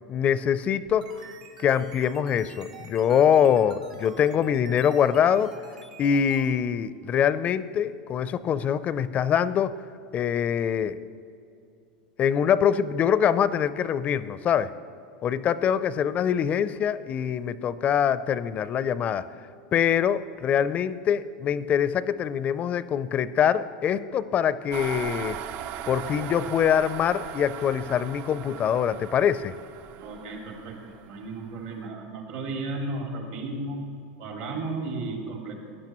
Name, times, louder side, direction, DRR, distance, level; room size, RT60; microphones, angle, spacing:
voice 1, 0.1-1.1 1.6-5.5 6.0-9.7 10.1-11.0 12.2-14.7 15.2-19.3 19.7-25.4 25.9-29.5, left 8 dB, 35° left, 16 dB, 0.4 m, -24 dB
sound 1, 0.8-6.5, right 5 dB, 90° right, 1.4 m, -48 dB
sound 2, 24.7-31.7, right 11 dB, 50° right, 0.4 m, -39 dB
voice 2, 30.0-30.8 31.1-33.8 34.2-35.5, right 2 dB, 70° right, 1 dB, 2.3 m, -34 dB
16.0 x 10.0 x 3.0 m, 2.5 s
hypercardioid pair, 100°, 4 cm